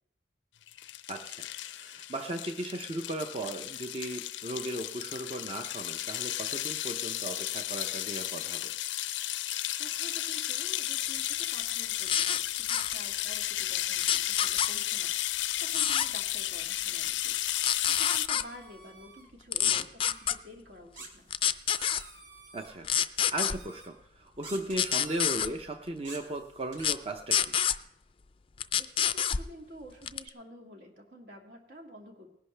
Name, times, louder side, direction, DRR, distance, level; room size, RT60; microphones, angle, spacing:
sound 1, 0.7-18.3, left 14 dB, 90° left, 0.5 m, -34 dB
voice 1, 1.1-8.7 19.6-19.8 22.5-27.5, right 1 dB, 30° right, 5 dB, 0.6 m, -37 dB
voice 2, 9.7-17.4 18.0-21.3 28.8-32.3, equal, 70° right, 2 dB, 2.3 m, -50 dB
sound 2, 12.1-12.4 12.7-12.9 14.0-14.7 15.7-16.1 17.3-18.4 19.5-20.3 21.3-22.0 22.8-23.5 24.7-25.5 26.8-27.0 27.3-27.8 28.6-29.4 30.1-30.3, left 9 dB, 30° left, 0.4 m, -27 dB
sound 3, 17.5-17.6 18.1-19.3 20.1-20.4 21.0-22.7 23.5-23.9 24.4-25.5 26.0-26.9, right 3 dB, 90° right, 2.8 m, -48 dB
19.5 x 11.0 x 3.3 m, 0.78 s
head